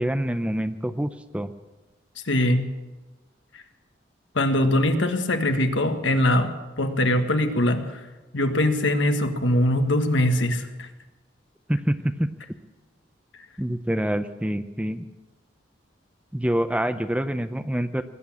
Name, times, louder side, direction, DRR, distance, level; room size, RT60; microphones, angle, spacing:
voice 1, 0.0-1.5 11.7-12.3 13.6-15.0 16.3-18.0, equal, 5° right, 10 dB, 0.5 m, -26 dB
voice 2, 2.2-2.7 4.3-8.0 8.3-10.9, left 1 dB, 75° left, 6 dB, 1.6 m, -22 dB
19.5 x 8.5 x 8.6 m, 1.2 s
head